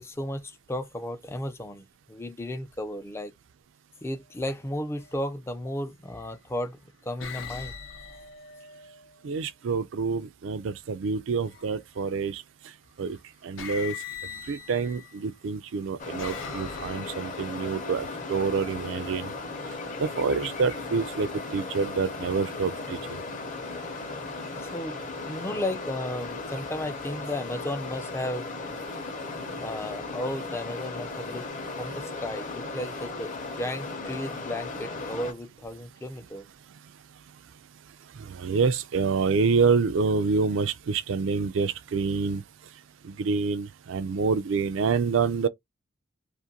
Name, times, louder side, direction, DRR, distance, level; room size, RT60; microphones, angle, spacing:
voice 1, 0.0-3.3 4.0-7.7 24.6-25.0 25.2-28.5 29.6-31.5 31.8-36.5, left 1 dB, 15° left, 0.3 m, -34 dB
sound 1, 4.9-5.2 6.1-6.6 7.2-9.2 11.4-12.0 13.0-13.2 13.6-15.2 15.8-17.5, left 6 dB, 75° left, 0.6 m, -41 dB
voice 2, 9.2-12.4 13.0-13.2 13.4-13.9 14.5-19.3 20.0-23.2 38.4-42.4 43.0-45.5, right 5 dB, 70° right, 0.4 m, -27 dB
sound 2, 16.0-35.3, left 3 dB, 40° left, 0.7 m, -36 dB
2.5 x 2.5 x 2.8 m
head